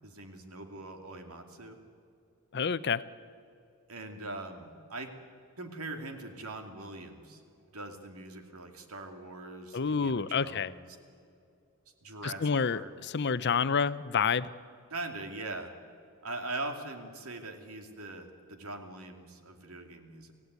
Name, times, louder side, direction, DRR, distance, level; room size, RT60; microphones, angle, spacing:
voice 1, 0.0-1.8 3.9-5.1 5.6-7.4 7.7-10.9 12.0-12.9 14.9-15.7 16.2-20.3, right 2 dB, 80° right, 5 dB, 2.5 m, -42 dB
voice 2, 2.5-3.0 9.7-10.7 12.2-14.5, left 6 dB, 50° left, 15 dB, 0.6 m, -28 dB
25.0 x 16.0 x 9.5 m, 2.5 s
head